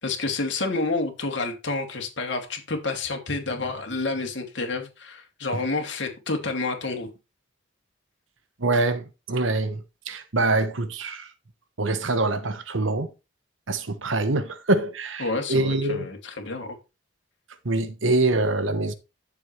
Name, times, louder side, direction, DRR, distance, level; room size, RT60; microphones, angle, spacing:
voice 1, 0.0-7.1 15.2-16.7, left 3 dB, 65° left, 2.7 m, -29 dB
voice 2, 8.6-11.3 11.8-13.1 13.7-16.1 17.6-18.9, right 2 dB, 80° right, 1.2 m, -25 dB
11.0 x 7.3 x 3.3 m
head